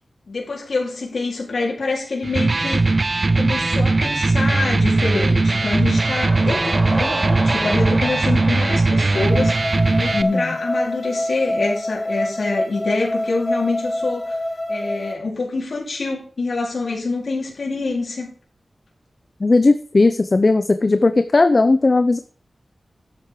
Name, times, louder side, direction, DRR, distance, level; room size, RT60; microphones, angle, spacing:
voice 1, 0.3-2.8 3.3-9.7 10.0-14.4 14.7-18.3, left 3 dB, 75° left, -2 dB, 4.3 m, -26 dB
Electric guitar, 2.2-10.2, right 3 dB, 45° right, 0.6 m, -19 dB
sound 1, 5.4-10.3, right 1 dB, 30° right, 4.6 m, -31 dB
sound 2, 9.1-15.1, left 1 dB, 10° left, 5.0 m, -26 dB
voice 2, 10.1-10.6 19.4-22.2, left 3 dB, 45° left, 10 dB, 0.7 m, -16 dB
11.5 x 8.6 x 4.8 m, 0.43 s
wide cardioid pair, 75°, 0 cm